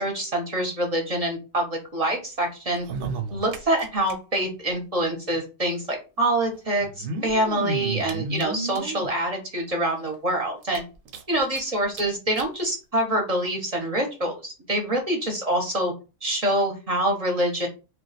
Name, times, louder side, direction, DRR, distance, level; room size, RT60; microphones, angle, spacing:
voice 1, 0.0-2.9 3.3-10.8 11.3-15.9 16.2-17.7, right 1 dB, 40° right, 1 dB, 0.6 m, -26 dB
sound 1, 2.7-4.1 4.4-4.5 4.7-4.8 5.8-5.9 6.8-9.1 9.7-9.8 10.1-10.2 10.6-11.6 11.9-12.0 12.4-12.5 13.3-13.4, right 3 dB, 85° right, 1.0 m, -32 dB
2.3 x 2.2 x 4.0 m, 0.31 s
omnidirectional pair, 1.3 m